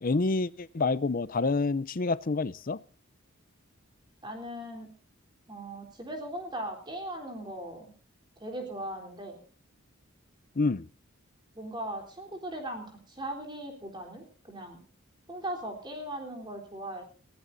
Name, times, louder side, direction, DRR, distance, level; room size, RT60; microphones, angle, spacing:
voice 1, 0.0-2.8 10.6-10.9, left 3 dB, 40° left, 0.5 m, -28 dB
voice 2, 4.2-4.9 5.5-7.9 8.4-9.4 11.6-14.8 15.3-17.0, right 1 dB, 20° right, 3.6 m, -38 dB
21.5 x 16.5 x 2.7 m
head